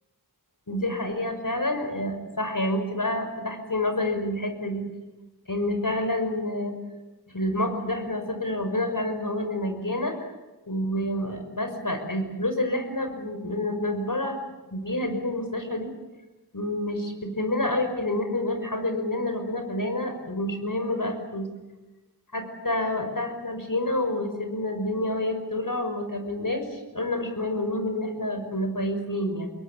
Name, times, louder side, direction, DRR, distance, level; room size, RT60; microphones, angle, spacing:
voice 1, 0.7-4.9 5.5-6.7 7.3-10.3 10.7-14.4 14.7-15.9 16.5-21.5 22.3-29.5, left 1 dB, 55° left, 6 dB, 5.8 m, -28 dB
28.0 x 22.0 x 8.3 m, 1.1 s
wide cardioid pair, 65°, 38 cm